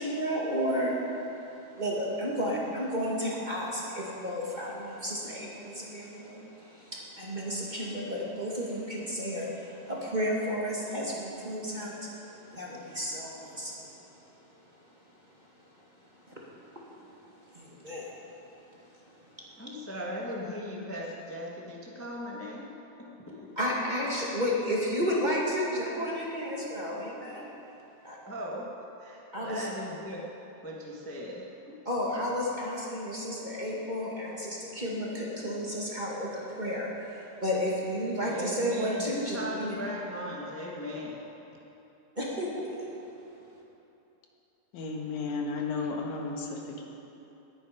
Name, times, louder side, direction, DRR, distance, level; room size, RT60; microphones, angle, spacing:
voice 1, 0.0-14.1 16.3-16.4 17.5-18.3 18.7-19.4 23.6-27.5 28.0-28.2 29.3-29.7 31.8-39.8 42.1-42.9, equal, 20° right, -4 dB, 1.4 m, -32 dB
voice 2, 19.6-23.5 28.3-30.2 30.6-31.8 38.2-41.2, equal, 20° left, -4 dB, 0.4 m, -38 dB
voice 3, 44.7-46.8, left 4 dB, 70° left, 1 dB, 2.8 m, -33 dB
19.5 x 9.8 x 5.2 m, 3.0 s
omnidirectional pair, 3.6 m